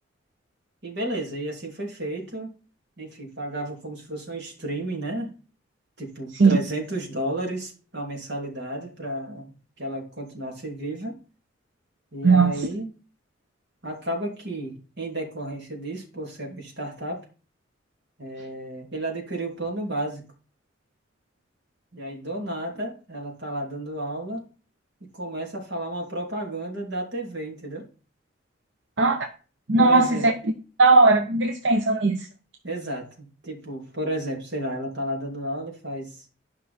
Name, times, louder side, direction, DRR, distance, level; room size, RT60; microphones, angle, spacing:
voice 1, 0.8-2.5 3.0-5.3 6.0-11.2 12.1-12.9 13.8-17.3 18.2-20.2 21.9-24.4 25.1-27.8 29.8-30.3 32.6-36.2, right 1 dB, 65° right, 3.0 m, -32 dB
voice 2, 29.7-30.3 30.8-32.2, right 3 dB, 85° right, 0.8 m, -18 dB
11.5 x 5.5 x 4.3 m
head